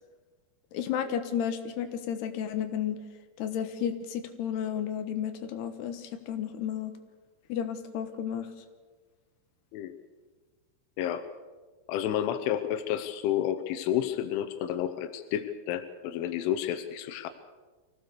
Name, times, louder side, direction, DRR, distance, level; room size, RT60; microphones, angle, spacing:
voice 1, 0.7-3.0 3.4-7.0 7.5-8.5, left 9 dB, 70° left, 8 dB, 3.1 m, -32 dB
voice 2, 11.9-17.3, left 11 dB, 90° left, 9 dB, 3.4 m, -30 dB
24.5 x 17.0 x 6.8 m, 1.4 s
omnidirectional pair, 5.4 m